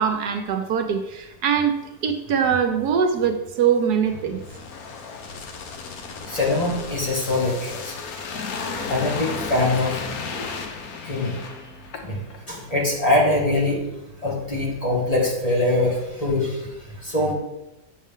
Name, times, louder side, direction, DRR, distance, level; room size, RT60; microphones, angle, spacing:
voice 1, 0.0-1.8 2.0-4.4, right 7 dB, 70° right, 6 dB, 1.2 m, -22 dB
sound 1, 4.1-12.4 12.7-12.9, left 5 dB, 65° left, 1.3 m, -34 dB
voice 2, 6.3-7.9 8.9-9.9 10.3-10.5 11.1-11.4 12.0-12.2 12.5-13.8 14.2-16.6 17.0-17.3, left 2 dB, 20° left, -4 dB, 2.1 m, -23 dB
8.1 x 7.1 x 3.7 m, 0.94 s
omnidirectional pair, 1.8 m